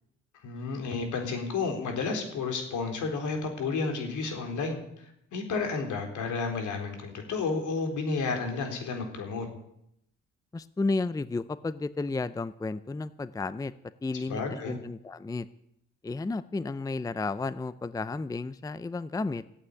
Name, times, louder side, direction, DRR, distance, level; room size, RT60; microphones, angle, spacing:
voice 1, 0.4-9.5 14.3-14.8, left 4 dB, 75° left, 4 dB, 3.9 m, -31 dB
voice 2, 10.5-13.7 14.0-15.5 16.0-19.4, left 3 dB, 10° left, 15 dB, 0.5 m, -32 dB
14.5 x 8.6 x 9.7 m, 0.77 s
cardioid pair, 90°, 30 cm